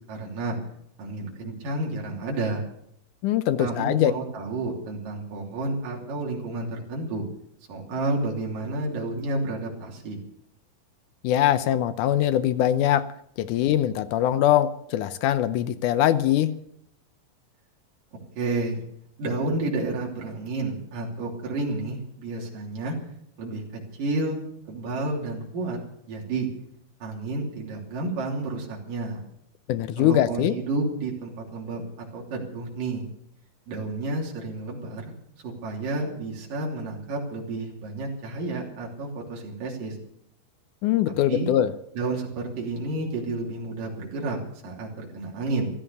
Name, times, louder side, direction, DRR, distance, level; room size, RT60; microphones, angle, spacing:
voice 1, 0.1-0.6 1.0-2.6 3.6-7.2 7.7-10.2 18.4-18.8 19.2-23.0 23.4-25.8 26.1-26.5 27.0-29.2 30.0-33.0 33.7-35.0 35.4-40.0 41.3-41.5 41.9-44.4 44.6-45.7, right 2 dB, 65° right, -2 dB, 4.7 m, -30 dB
voice 2, 3.2-4.1 11.2-13.1 13.4-16.6 29.7-30.5 40.8-41.7, left 12 dB, 75° left, 13 dB, 2.0 m, -22 dB
15.0 x 13.5 x 6.8 m, 0.72 s
omnidirectional pair, 4.1 m